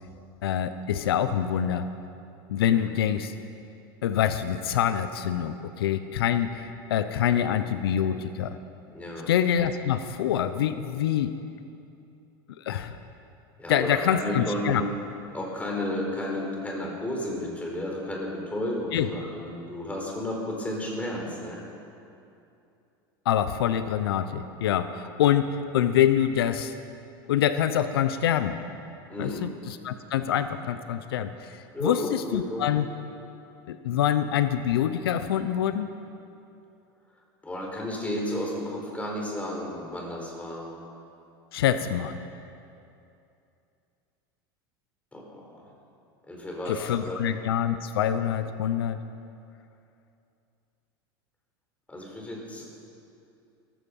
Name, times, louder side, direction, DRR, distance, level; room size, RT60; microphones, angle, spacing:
voice 1, 0.4-1.9 2.5-3.3 4.0-8.6 9.3-11.4 12.6-13.0 13.7-14.8 18.9-19.1 23.3-26.7 27.3-28.6 29.2-32.8 33.7-35.9 41.5-42.2 46.7-49.0, left 10 dB, 90° left, 11 dB, 0.8 m, -25 dB
voice 2, 8.9-9.3 13.6-14.8 15.3-21.6 29.1-29.5 31.7-32.7 37.4-40.7 45.1-45.7 46.3-47.2 51.9-52.6, left 1 dB, 10° left, -1 dB, 4.6 m, -32 dB
17.5 x 15.0 x 5.5 m, 2.7 s
supercardioid pair, 110°, 12 cm